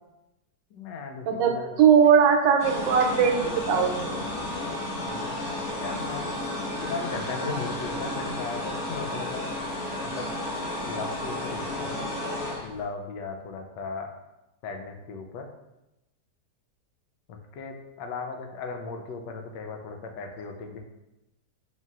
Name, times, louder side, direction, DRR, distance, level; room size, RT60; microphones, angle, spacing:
voice 1, 0.7-1.8 5.0-5.5 5.8-6.3 6.8-9.5 10.0-10.3 10.8-12.0 12.6-14.1 14.6-15.5 17.3-20.8, left 4 dB, 90° left, 4 dB, 1.3 m, -37 dB
voice 2, 1.3-4.2, right 7 dB, 85° right, 4 dB, 1.2 m, -20 dB
sound 1, 2.6-12.8, left 1 dB, 60° left, 1.2 m, -32 dB
3.9 x 3.9 x 2.4 m, 0.95 s
omnidirectional pair, 1.9 m